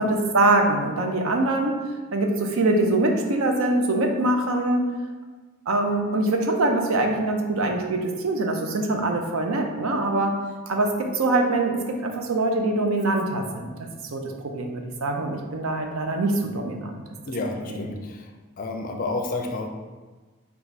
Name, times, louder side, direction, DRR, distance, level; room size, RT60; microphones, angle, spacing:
voice 1, 0.0-1.7 2.1-4.8 5.7-10.3 10.7-17.0 17.7-17.8, right 2 dB, 75° right, 3 dB, 0.5 m, -23 dB
voice 2, 17.3-18.3 18.6-19.7, left 2 dB, 40° left, 3 dB, 0.4 m, -30 dB
4.5 x 2.3 x 4.0 m, 1.3 s
head